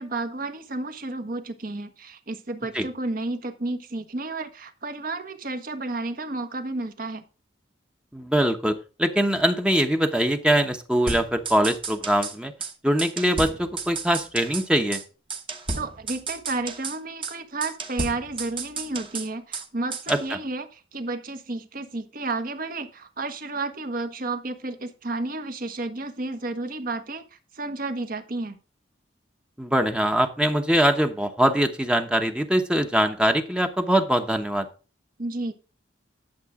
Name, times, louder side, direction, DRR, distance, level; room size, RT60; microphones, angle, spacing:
voice 1, 0.0-7.2 15.7-28.6 35.2-35.5, right 2 dB, 50° right, 9 dB, 1.3 m, -32 dB
voice 2, 8.1-12.5 12.8-15.0 20.1-20.4 29.6-34.7, equal, 5° right, 6 dB, 0.9 m, -22 dB
sound 1, 11.1-12.3 12.6-12.7 13.0-14.7 14.9-15.0 15.3-17.0 17.2-17.3 17.6-19.7 19.9-20.3, right 4 dB, 30° right, 1.2 m, -33 dB
11.5 x 7.5 x 3.7 m, 0.33 s
head